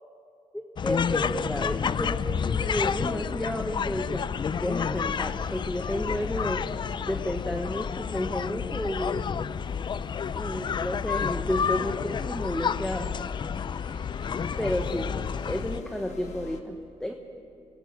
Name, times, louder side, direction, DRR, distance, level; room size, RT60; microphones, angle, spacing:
voice 1, 0.5-4.3 4.5-6.7 7.0-9.3 10.3-13.1 14.4-15.1 15.5-17.1, left 1 dB, 5° left, 4 dB, 1.2 m, -31 dB
sound 1, 0.8-15.8, left 7 dB, 40° left, 0.4 m, -30 dB
sound 2, 1.3-16.6, left 6 dB, 75° left, 1.6 m, -45 dB
26.5 x 19.0 x 5.8 m, 2.6 s
cardioid pair, 115°, 12 cm